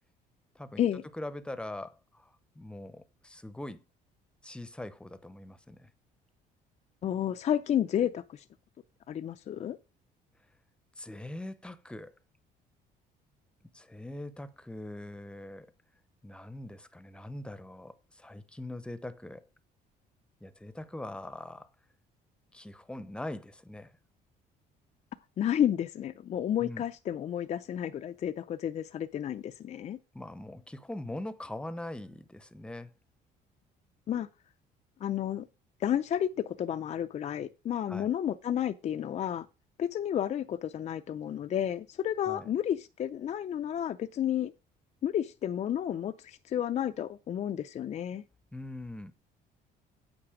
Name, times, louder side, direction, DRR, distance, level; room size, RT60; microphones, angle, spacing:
voice 1, 1.1-3.8 4.4-5.9 11.0-12.1 13.7-15.7 16.2-19.4 20.4-21.7 22.5-23.9 26.6-26.8 30.1-32.9 37.9-38.1 42.3-42.5 48.5-49.1, left 1 dB, 5° left, 0.8 m, -42 dB
voice 2, 7.0-8.4 9.1-9.8 25.4-30.0 34.1-34.3 35.0-35.5 35.8-39.5 39.8-44.5 45.0-48.2, left 10 dB, 45° left, 0.5 m, -31 dB
8.8 x 5.9 x 5.0 m
cardioid pair, 110°, 17 cm